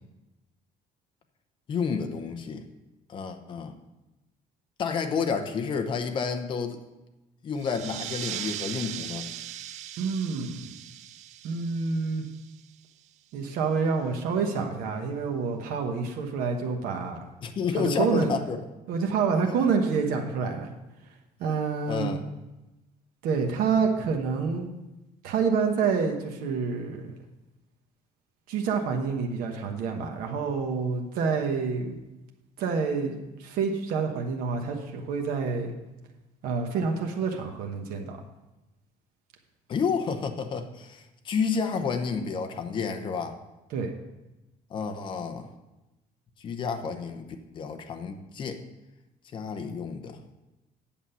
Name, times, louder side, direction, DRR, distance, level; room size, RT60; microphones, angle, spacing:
voice 1, 1.7-2.6 3.1-3.7 4.8-6.8 7.4-9.3 17.4-18.6 21.9-22.2 39.7-43.4 44.7-45.5 46.4-47.3 47.5-48.6 49.3-50.2, left 5 dB, 35° left, 6 dB, 0.8 m, -30 dB
sound 1, 7.6-12.8, right 12 dB, 50° right, 0.4 m, -39 dB
voice 2, 10.0-10.7 11.4-12.3 13.3-17.3 17.7-18.3 18.9-20.7 21.4-22.2 23.2-24.7 25.2-27.1 28.5-32.0 32.6-35.7 36.4-38.2 43.7-43.9, right 5 dB, 80° right, 3 dB, 1.1 m, -28 dB
8.7 x 7.2 x 5.5 m, 1.0 s
cardioid pair, 165°, 15 cm